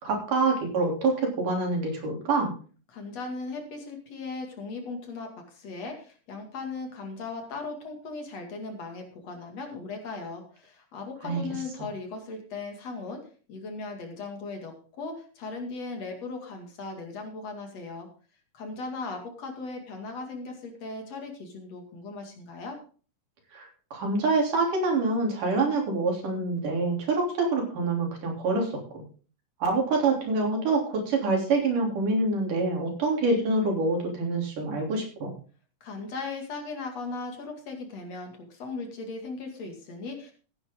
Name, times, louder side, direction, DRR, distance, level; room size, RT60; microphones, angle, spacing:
voice 1, 0.0-2.5 11.2-11.4 23.5-29.0 29.6-35.3, right 3 dB, 75° right, 1 dB, 4.8 m, -26 dB
voice 2, 2.9-18.1 18.5-22.8 35.8-40.3, left 3 dB, 55° left, 4 dB, 3.3 m, -38 dB
15.0 x 9.9 x 3.7 m, 0.38 s
omnidirectional pair, 3.7 m